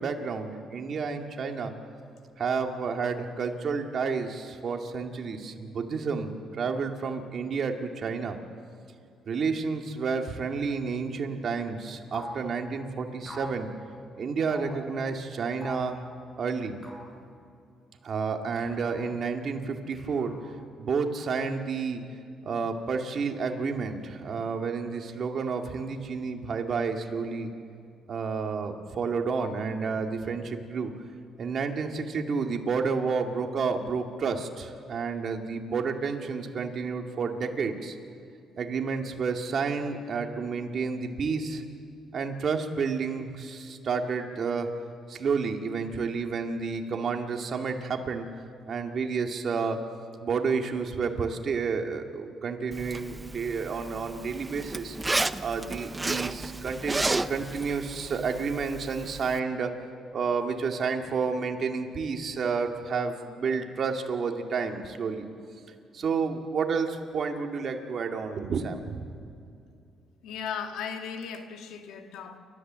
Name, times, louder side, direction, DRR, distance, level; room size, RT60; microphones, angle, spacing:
voice 1, 0.0-1.7 2.4-8.4 9.3-13.7 14.2-16.0 16.4-16.8 18.0-20.3 20.8-22.0 22.4-27.5 28.1-30.9 31.4-38.0 38.6-41.6 42.1-44.7 45.1-48.3 48.7-49.8 50.2-55.0 55.4-59.7 60.1-65.3 65.9-69.0, right 5 dB, 50° right, 3 dB, 2.2 m, -30 dB
sound 1, 12.1-12.5 13.2-13.6 14.5-14.8 15.6-15.9 16.8-17.2 18.6-19.1 19.9-20.6, equal, 20° left, 5.5 m, -43 dB
Zipper (clothing), 52.7-59.4, right 2 dB, 15° right, 0.6 m, -33 dB
voice 2, 70.2-72.4, left 7 dB, 85° left, 5 dB, 1.9 m, -36 dB
29.5 x 14.0 x 7.6 m, 2.4 s
cardioid pair, 100°, 0 cm